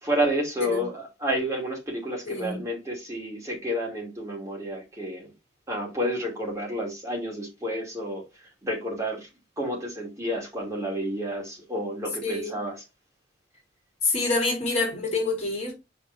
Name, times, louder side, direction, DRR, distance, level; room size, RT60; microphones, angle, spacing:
voice 1, 0.0-5.3 5.7-8.2 8.6-9.3 9.6-12.8, equal, 15° right, 2.5 m, -30 dB
voice 2, 2.2-2.6 12.2-12.6 14.0-15.7, left 3 dB, 35° left, 2.8 m, -27 dB
5.2 x 4.5 x 5.5 m
head